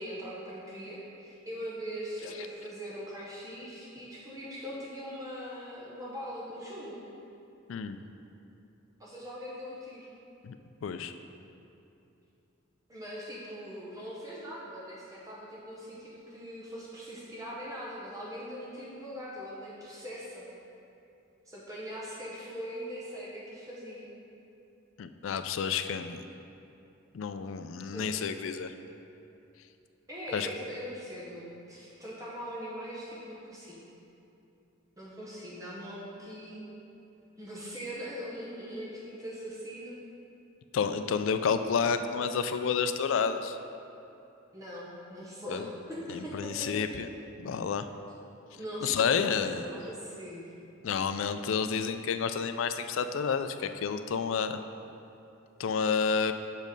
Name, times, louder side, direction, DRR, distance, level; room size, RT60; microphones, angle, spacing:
voice 1, 0.0-7.0 9.0-10.1 12.9-20.5 21.5-24.1 27.9-28.1 30.1-33.8 35.0-36.6 37.4-40.0 44.5-46.7 48.6-50.4, equal, 15° right, -6 dB, 1.0 m, -41 dB
voice 2, 7.7-8.0 10.4-10.6 10.8-11.1 25.0-26.2 27.1-28.7 30.3-30.5 40.7-43.6 45.5-45.6 46.1-47.1 47.4-47.9 48.8-49.6 50.8-54.6 55.6-56.3, left 6 dB, 70° left, 10 dB, 0.4 m, -30 dB
6.5 x 5.2 x 5.2 m, 2.7 s
head